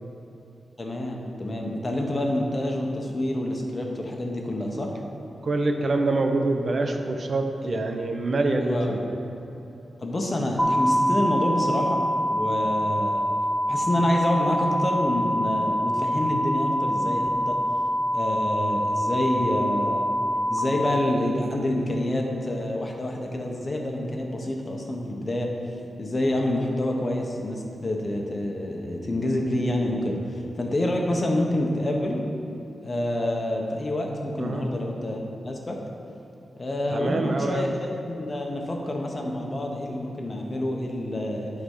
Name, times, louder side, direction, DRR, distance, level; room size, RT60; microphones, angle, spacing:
voice 1, 0.8-4.9 7.6-7.8 8.6-9.0 10.0-12.0 12.3-13.2 13.7-17.5 18.1-20.0 20.5-25.5 26.0-32.2 32.8-35.8 36.6-41.5, left 1 dB, 35° left, 1 dB, 1.2 m, -27 dB
voice 2, 5.4-9.0 34.4-34.6 36.9-37.7, right 2 dB, 50° right, 4 dB, 0.8 m, -25 dB
sound 1, 10.6-20.6, equal, ahead, 0.9 m, -25 dB
11.5 x 4.0 x 5.7 m, 3.0 s
cardioid pair, 70°, 0 cm